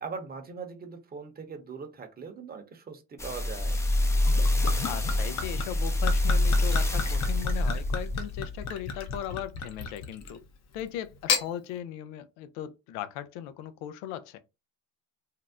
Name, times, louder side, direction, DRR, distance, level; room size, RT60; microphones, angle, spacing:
voice 1, 0.0-3.8, right 5 dB, 25° right, 0.8 m, -40 dB
sound 1, 3.2-9.7 10.2-10.3, left 1 dB, 5° left, 0.4 m, -26 dB
Gurgling / Chink clink / Liquid, 4.3-10.4 11.1-11.5, left 5 dB, 40° left, 0.7 m, -34 dB
voice 2, 4.9-10.4 10.7-14.4, left 11 dB, 80° left, 0.6 m, -38 dB
2.7 x 2.1 x 3.4 m
supercardioid pair, 95°, 39 cm